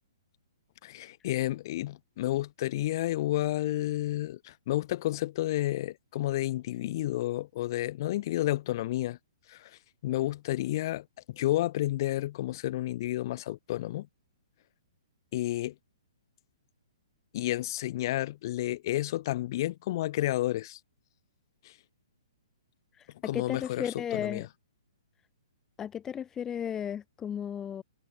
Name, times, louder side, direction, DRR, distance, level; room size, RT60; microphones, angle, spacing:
voice 1, 0.8-9.2 9.5-9.7 10.0-14.1 15.3-15.7 17.3-20.8 21.7-21.8 23.2-24.5, left 15 dB, 45° left, 6.8 m, -31 dB
voice 2, 22.9-24.5 25.8-27.8, left 8 dB, 15° left, 1.5 m, -35 dB
hypercardioid pair, 140°, 3 cm